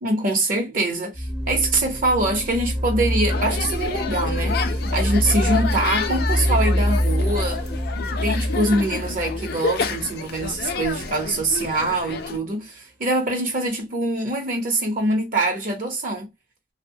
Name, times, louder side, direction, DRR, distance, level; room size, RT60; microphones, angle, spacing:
voice 1, 0.0-7.6 8.2-16.3, right 2 dB, 50° right, 0.7 m, -24 dB
sound 1, 1.1-10.9, equal, 5° right, 0.5 m, -25 dB
sound 2, 3.3-12.4, left 5 dB, 60° left, 0.4 m, -29 dB
2.8 x 2.1 x 2.6 m
head